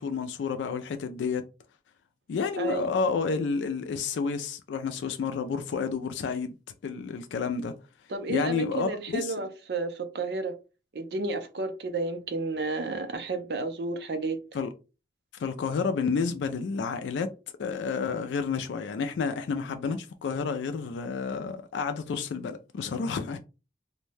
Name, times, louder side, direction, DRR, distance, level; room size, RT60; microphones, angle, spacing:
voice 1, 0.0-1.4 2.3-6.6 6.8-7.7 8.3-9.3 14.5-14.7 15.4-17.3 17.6-23.4, left 5 dB, 85° left, 0.3 m, -30 dB
voice 2, 2.6-2.9 8.1-10.5 10.9-14.4, right 3 dB, 65° right, 0.5 m, -31 dB
2.6 x 2.1 x 3.2 m
head